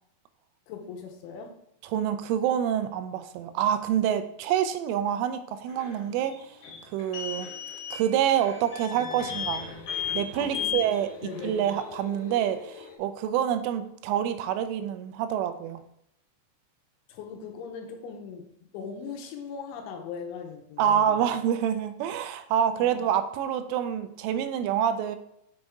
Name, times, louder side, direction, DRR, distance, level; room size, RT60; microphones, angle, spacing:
voice 1, 0.7-1.6 10.4-10.8 11.2-11.6 17.1-18.5 18.7-21.2 22.8-22.9, left 6 dB, 85° left, 3 dB, 3.2 m, -39 dB
voice 2, 1.9-6.5 6.9-7.5 7.9-9.7 10.1-11.1 11.4-15.8 20.8-25.2, right 9 dB, 85° right, 10 dB, 3.1 m, -27 dB
sound 1, 5.7-13.0, left 8 dB, 65° left, 2.8 m, -36 dB
6.8 x 6.2 x 3.5 m, 0.74 s
omnidirectional pair, 5.6 m